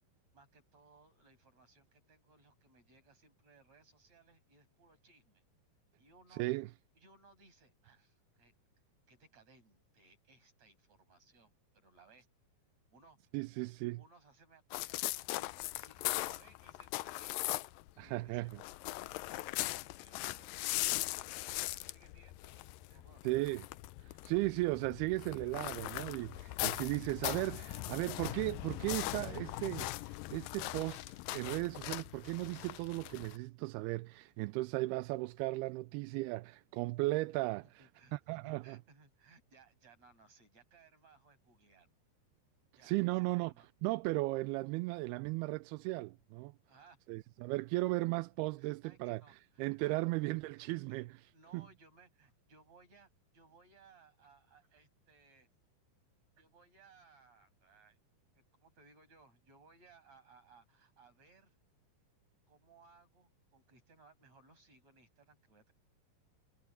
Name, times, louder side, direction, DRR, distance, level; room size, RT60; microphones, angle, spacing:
voice 1, 0.3-5.4 6.0-6.4 7.0-8.5 9.1-12.2 12.9-13.2 13.5-13.7 13.9-17.5 18.0-18.5 18.9-19.6 20.0-20.6 21.2-23.7 26.7-27.0 35.6-35.7 37.6-38.1 38.4-41.9 42.8-43.7 44.8-44.9 46.7-47.0 48.6-50.0 50.5-51.0 51.3-55.5 56.4-58.0 58.3-61.6 62.5-65.7, right 4 dB, 40° right, 7.6 m, -64 dB
voice 2, 13.3-14.0 18.0-18.6 23.2-23.6 24.2-37.9 38.1-38.8 42.8-43.5 43.8-46.5 47.1-49.2 49.6-51.6, right 21 dB, 85° right, 2.4 m, -36 dB
sound 1, 14.7-17.9 18.2-33.4, left 18 dB, 85° left, 2.0 m, -40 dB
omnidirectional pair, 4.7 m